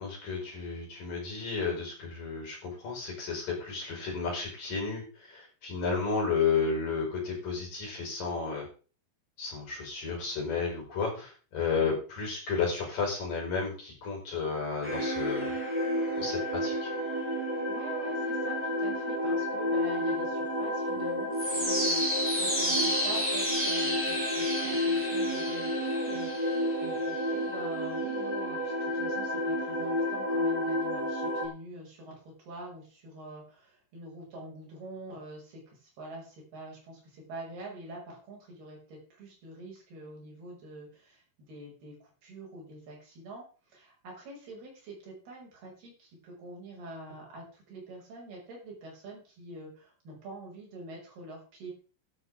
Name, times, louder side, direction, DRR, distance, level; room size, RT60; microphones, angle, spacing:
voice 1, 0.0-8.7 9.4-15.5 16.2-16.9, left 5 dB, 45° left, -1 dB, 6.7 m, -32 dB
sound 1, 14.8-31.4, equal, ahead, 5.0 m, -30 dB
voice 2, 17.7-51.7, right 2 dB, 50° right, -2 dB, 8.0 m, -45 dB
13.0 x 13.0 x 3.7 m, 0.37 s
omnidirectional pair, 5.6 m